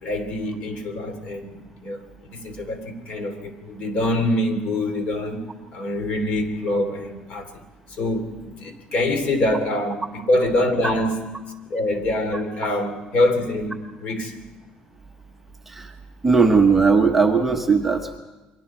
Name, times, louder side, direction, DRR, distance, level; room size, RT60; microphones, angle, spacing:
voice 1, 0.0-5.5 5.7-7.6 7.9-11.2 11.7-14.4, left 1 dB, 50° left, 7 dB, 3.1 m, -25 dB
voice 2, 16.2-18.2, right 4 dB, 5° right, 2 dB, 1.1 m, -18 dB
29.5 x 23.0 x 4.4 m, 1.1 s
cardioid pair, 160°, 3 cm